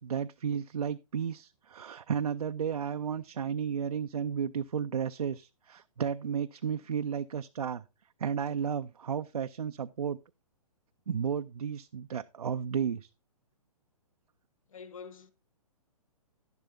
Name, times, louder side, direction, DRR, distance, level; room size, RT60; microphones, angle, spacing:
voice 1, 0.0-7.8 8.2-10.2 11.1-13.1, right 7 dB, 75° right, 0.4 m, -33 dB
voice 2, 14.7-15.3, left 6 dB, 60° left, 1.2 m, -46 dB
11.5 x 10.5 x 2.6 m
figure-of-eight pair, 125°, 19 cm